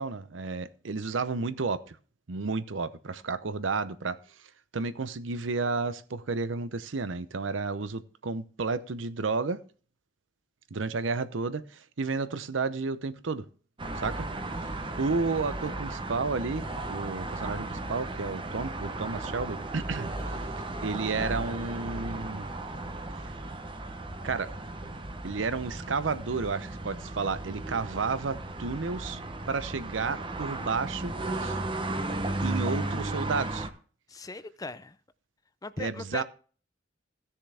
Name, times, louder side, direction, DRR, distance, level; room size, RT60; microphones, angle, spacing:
voice 1, 0.0-2.0 2.3-4.2 4.7-9.6 10.7-13.4 14.0-14.3 14.6-20.1 20.8-22.5 24.2-24.5 25.2-29.2 29.5-31.1 31.4-31.6 32.4-33.7 35.8-36.2, right 4 dB, 85° right, 0.7 m, -32 dB
sound 1, 13.8-33.7, right 2 dB, 25° right, 0.8 m, -35 dB
voice 2, 34.1-35.0 35.6-36.2, left 2 dB, 20° left, 0.5 m, -39 dB
16.0 x 6.8 x 3.4 m
head